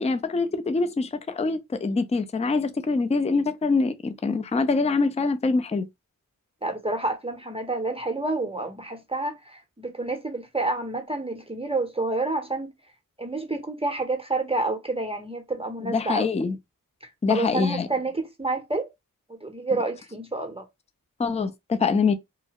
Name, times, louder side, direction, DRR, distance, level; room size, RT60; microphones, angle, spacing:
voice 1, 0.0-5.9 15.8-16.6 17.2-17.9 21.2-22.1, left 4 dB, 20° left, 0.4 m, -24 dB
voice 2, 6.6-12.7 13.2-16.3 17.3-18.9 19.4-20.6, right 2 dB, 15° right, 0.7 m, -29 dB
2.8 x 2.3 x 2.8 m
cardioid pair, 45°, 34 cm